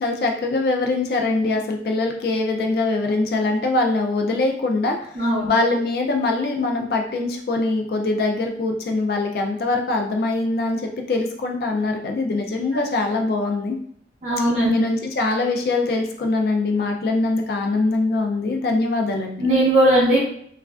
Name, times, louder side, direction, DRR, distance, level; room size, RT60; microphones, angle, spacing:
voice 1, 0.0-13.8 14.7-19.5, left 2 dB, 55° left, 3 dB, 0.3 m, -23 dB
voice 2, 5.2-5.5 14.2-14.7 19.4-20.2, right 1 dB, 40° right, -9 dB, 0.7 m, -18 dB
3.1 x 2.4 x 2.3 m, 0.66 s
head